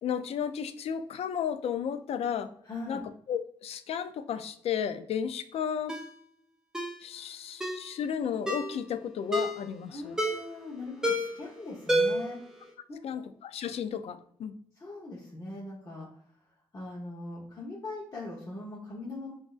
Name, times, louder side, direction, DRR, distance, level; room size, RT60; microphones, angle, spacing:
voice 1, 0.0-2.5 2.9-3.0 3.3-5.9 7.0-10.2 13.0-14.5, left 8 dB, 80° left, 11 dB, 0.4 m, -33 dB
voice 2, 2.6-3.0 7.1-7.4 9.9-12.4 12.9-13.3 14.8-16.1 16.7-19.3, left 2 dB, 30° left, -6 dB, 0.9 m, -41 dB
Ringtone, 5.9-6.1 6.7-7.0 7.6-7.9 8.5-8.7 9.3-9.6 10.2-10.5 11.0-11.4 11.9-12.3 12.6-12.7, equal, 5° right, 0.7 m, -28 dB
6.0 x 2.6 x 2.4 m, 0.64 s
wide cardioid pair, 140°, 10 cm